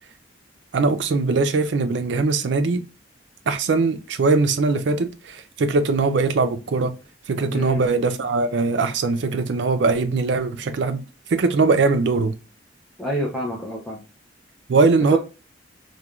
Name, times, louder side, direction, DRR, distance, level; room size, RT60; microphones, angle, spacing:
voice 1, 0.7-2.8 3.5-6.9 7.3-11.0 11.3-12.3 14.7-15.2, right 3 dB, 70° right, 0.4 m, -21 dB
voice 2, 7.5-7.9 13.0-14.0 15.1-15.2, equal, ahead, 0.5 m, -27 dB
3.0 x 2.2 x 2.3 m
head